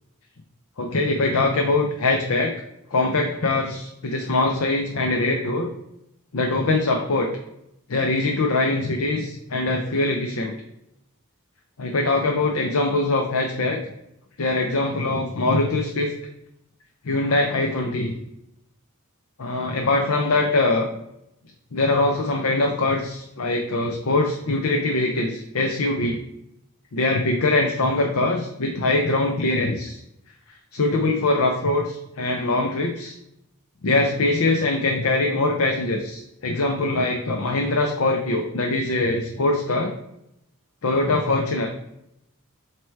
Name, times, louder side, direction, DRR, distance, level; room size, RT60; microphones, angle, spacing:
voice 1, 0.8-2.5 2.9-5.7 6.3-7.3 7.9-10.5 11.8-13.8 14.4-16.1 17.0-18.1 19.4-20.9 21.7-26.2 26.9-30.0 30.7-33.1 33.8-39.9 40.8-41.7, left 2 dB, 70° left, 2 dB, 0.7 m, -22 dB
7.6 x 3.0 x 4.6 m, 0.82 s
head